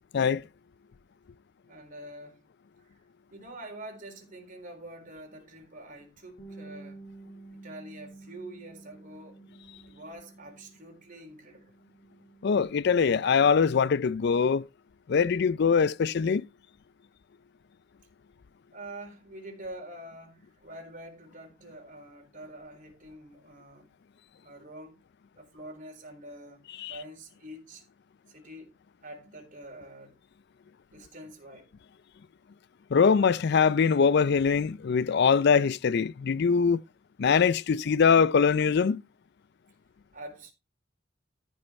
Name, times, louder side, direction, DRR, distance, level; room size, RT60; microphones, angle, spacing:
voice 1, 1.7-2.4 3.3-7.0 7.5-9.4 9.8-11.7 18.7-23.9 24.4-25.0 25.4-27.8 28.3-28.7 29.0-30.2 30.9-31.7 40.1-40.5, right 1 dB, 45° right, 3.9 m, -46 dB
Bass guitar, 6.4-11.1 11.4-12.6, right 2 dB, 40° left, 1.8 m, -50 dB
voice 2, 12.4-14.6 15.1-16.4 26.8-27.0 32.9-36.8 37.2-39.0, left 6 dB, 60° left, 0.4 m, -23 dB
14.0 x 5.4 x 4.3 m
head